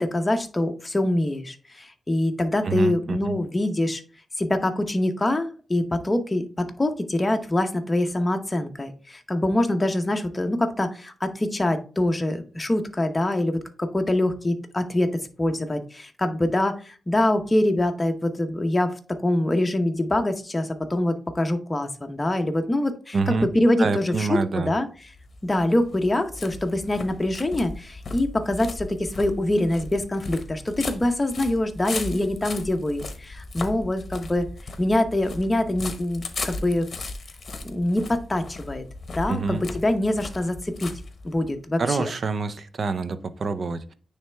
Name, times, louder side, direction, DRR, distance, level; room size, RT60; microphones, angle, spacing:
voice 1, 0.0-4.0 4.4-15.1 15.4-18.9 19.2-24.9 25.4-34.5 34.8-36.9 37.6-38.8 39.1-40.9 41.2-42.1, left 1 dB, 20° left, 5 dB, 0.8 m, -24 dB
voice 2, 2.6-3.4 23.1-23.5 23.8-24.7 39.3-39.6 41.8-43.9, right 4 dB, 55° right, 12 dB, 0.6 m, -26 dB
sound 1, 25.1-41.6, left 3 dB, 45° left, 0.9 m, -37 dB
9.2 x 3.3 x 3.3 m, 0.38 s
cardioid pair, 90°, 0 cm